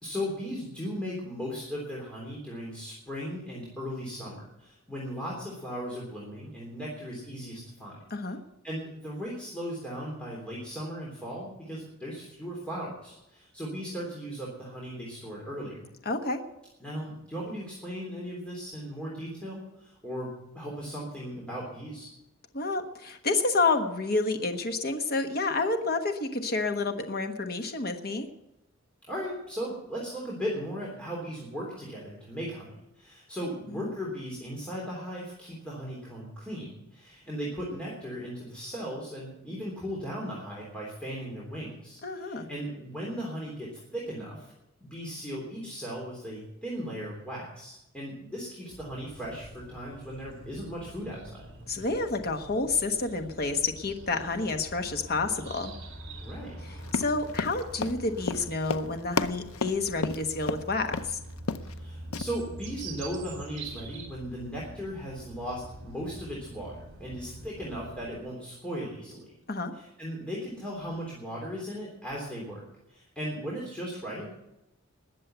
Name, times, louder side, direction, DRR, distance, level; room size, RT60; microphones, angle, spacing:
voice 1, 0.0-8.0 8.6-15.9 16.8-22.1 29.1-44.5 44.8-51.5 56.2-56.6 61.8-69.3 69.7-72.6 72.9-74.4, equal, 5° left, -4 dB, 3.4 m, -37 dB
voice 2, 16.0-16.4 22.5-28.3 33.7-33.9 42.0-42.5 51.7-55.7 56.6-61.2 69.5-69.7, left 3 dB, 45° left, 6 dB, 1.3 m, -29 dB
sound 1, 48.7-68.2, right 1 dB, 60° right, 4.5 m, -45 dB
Run, 56.8-60.6 60.9-61.1 61.4-61.8 62.1-62.2, left 4 dB, 90° left, 0.7 m, -32 dB
20.5 x 7.6 x 8.0 m, 0.89 s
head